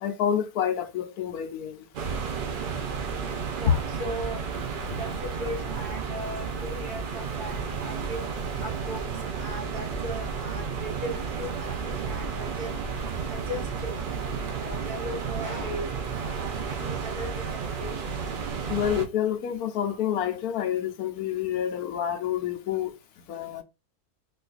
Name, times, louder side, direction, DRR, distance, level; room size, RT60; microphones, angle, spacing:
voice 1, 0.0-1.8 3.6-3.8 18.7-22.9 23.3-23.6, left 9 dB, 80° left, 1.1 m, -28 dB
sound 1, 1.9-19.0, right 5 dB, 70° right, 0.4 m, -32 dB
voice 2, 3.6-8.2 8.6-9.0 9.3-12.8 13.3-14.0 14.5-18.0, equal, 90° right, 1.7 m, -38 dB
4.1 x 2.5 x 2.4 m
omnidirectional pair, 1.6 m